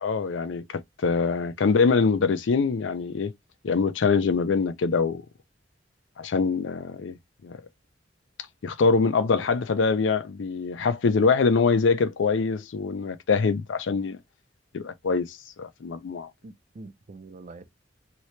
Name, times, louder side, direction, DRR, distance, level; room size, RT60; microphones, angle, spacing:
voice 1, 0.0-3.3 3.6-5.2 6.2-7.1 7.4-7.6 8.6-14.2 14.7-16.3, left 4 dB, 90° left, 0.5 m, -24 dB
voice 2, 16.4-17.7, right 3 dB, 45° right, 0.5 m, -45 dB
2.8 x 2.8 x 3.1 m
head